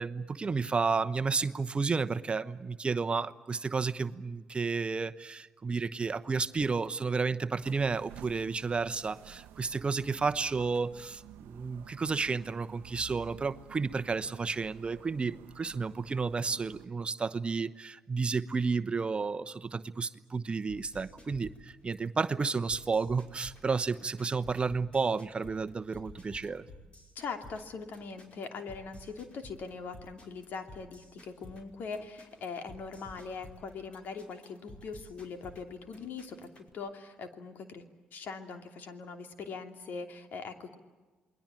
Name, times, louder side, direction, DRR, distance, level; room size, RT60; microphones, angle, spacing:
voice 1, 0.0-26.7, right 4 dB, 30° right, 12 dB, 1.0 m, -32 dB
sound 1, 7.6-16.9, right 13 dB, 80° right, 0.8 m, -52 dB
sound 2, 20.7-36.7, left 1 dB, 35° left, 5.5 m, -52 dB
voice 2, 27.1-37.9 38.1-40.8, left 5 dB, 65° left, 7 dB, 2.8 m, -41 dB
28.5 x 21.5 x 9.0 m, 1.3 s
supercardioid pair, 65°, 3 cm